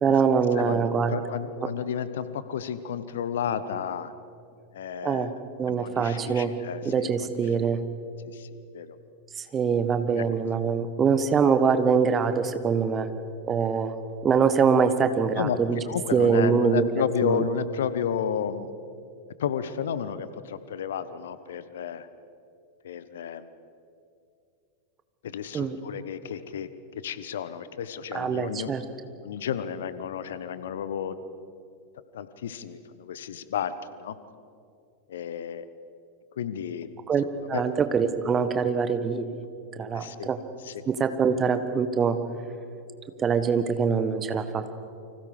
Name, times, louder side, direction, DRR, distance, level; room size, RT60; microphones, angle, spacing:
voice 1, 0.0-1.1 5.0-5.3 5.6-6.5 6.8-7.8 9.4-13.1 13.5-13.9 14.2-15.8 16.1-16.9 17.2-17.4 25.5-25.8 28.1-28.8 37.1-37.2 37.5-39.4 39.8-40.4 40.9-42.2 43.2-44.7, right 6 dB, 25° right, 10 dB, 1.6 m, -24 dB
voice 2, 0.6-4.1 4.7-5.3 5.7-7.3 8.2-9.0 10.1-10.2 15.4-15.6 15.9-18.7 19.4-22.1 22.8-23.5 25.2-26.7 27.0-28.7 29.2-31.1 32.1-34.2 35.1-35.6 36.4-36.9 37.5-37.6 39.9-40.3 40.6-40.8, left 8 dB, 60° left, 14 dB, 1.2 m, -32 dB
29.5 x 25.5 x 5.0 m, 2.5 s
figure-of-eight pair, 90°, 0 cm